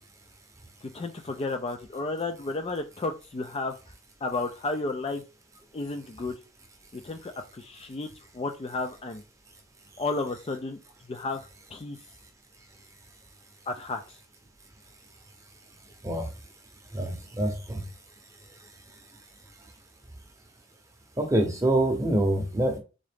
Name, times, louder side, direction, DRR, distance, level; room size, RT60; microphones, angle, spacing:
voice 1, 0.9-3.7 4.2-5.2 5.7-6.4 6.9-9.2 10.0-10.8 11.1-11.4 11.7-12.0 13.7-14.2, left 3 dB, 25° left, 6 dB, 0.3 m, -32 dB
voice 2, 16.9-17.8 21.2-22.8, right 1 dB, 15° right, 4 dB, 0.7 m, -25 dB
3.8 x 3.6 x 3.4 m, 0.33 s
head